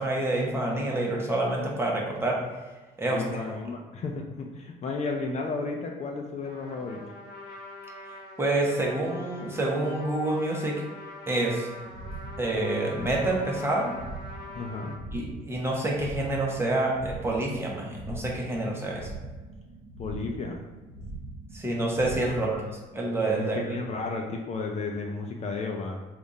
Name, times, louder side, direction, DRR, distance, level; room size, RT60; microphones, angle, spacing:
voice 1, 0.0-2.4 3.0-3.5 8.4-10.8 11.3-11.7 12.4-13.9 15.1-19.1 21.5-22.6 22.9-23.8, right 2 dB, 15° right, -2 dB, 0.9 m, -27 dB
voice 2, 3.1-7.0 14.5-15.0 20.0-20.6 22.2-22.8 23.4-26.0, left 3 dB, 40° left, 2 dB, 0.5 m, -33 dB
Trumpet, 6.4-15.0, left 2 dB, 70° left, 0.9 m, -44 dB
sound 1, 11.8-23.6, right 2 dB, 55° right, 0.8 m, -42 dB
3.5 x 2.4 x 4.0 m, 1.2 s
cardioid pair, 110°, 17 cm